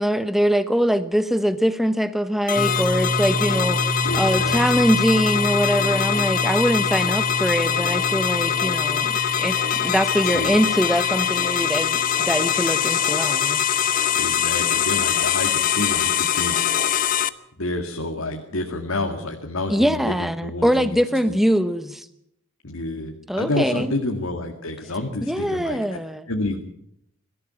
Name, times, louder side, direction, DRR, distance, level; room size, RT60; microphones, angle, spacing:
voice 1, 0.0-9.1 9.4-13.6 19.7-22.1 23.3-24.0 25.3-26.3, equal, ahead, 11 dB, 1.0 m, -22 dB
sound 1, 2.5-17.3, left 9 dB, 40° left, 0.8 m, -23 dB
sound 2, 2.6-14.3, right 1 dB, 15° left, 2.8 m, -30 dB
voice 2, 4.0-4.9 10.2-10.6 14.1-16.6 17.6-21.4 22.6-25.8 26.3-26.6, left 2 dB, 85° left, 3 dB, 2.1 m, -29 dB
23.0 x 14.5 x 8.9 m, 0.75 s
head